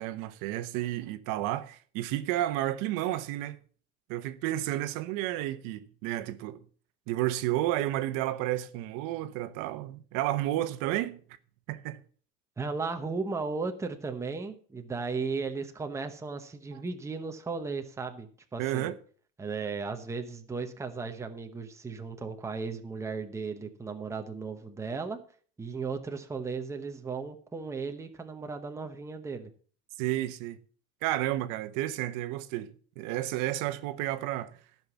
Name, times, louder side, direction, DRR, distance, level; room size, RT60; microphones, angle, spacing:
voice 1, 0.0-3.6 4.1-6.6 7.1-11.2 11.7-12.0 16.7-16.8 18.6-19.0 30.0-30.6 31.0-34.5, right 14 dB, 85° right, 1.1 m, -31 dB
voice 2, 12.6-19.0 19.4-25.2 25.6-29.5, right 4 dB, 10° right, 0.9 m, -36 dB
14.0 x 5.9 x 7.0 m
cardioid pair, 180°, 32 cm